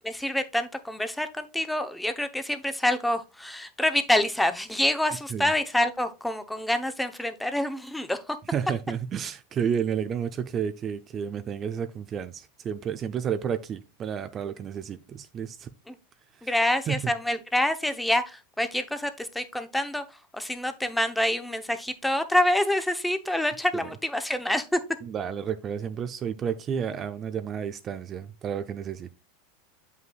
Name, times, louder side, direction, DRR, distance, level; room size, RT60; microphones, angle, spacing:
voice 1, 0.0-8.4 15.9-16.0 16.4-20.0 20.3-24.8, left 1 dB, 5° left, 0.7 m, -27 dB
voice 2, 8.5-15.7 16.4-16.5 16.9-17.1 23.7-23.9 25.0-29.2, right 8 dB, 35° right, 0.5 m, -31 dB
7.6 x 5.5 x 2.3 m
hypercardioid pair, 105°, 0 cm